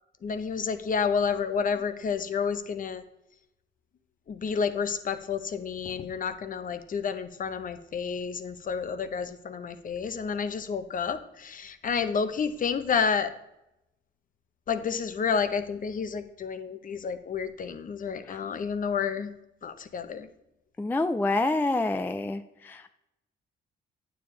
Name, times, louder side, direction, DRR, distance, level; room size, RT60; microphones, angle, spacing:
voice 1, 0.2-3.0 4.3-13.3 14.7-19.3 19.6-20.3, left 6 dB, 45° left, 10 dB, 0.7 m, -30 dB
voice 2, 20.8-22.9, left 2 dB, 10° left, 10 dB, 0.3 m, -27 dB
9.1 x 6.9 x 3.2 m, 0.88 s
cardioid pair, 90°, 20 cm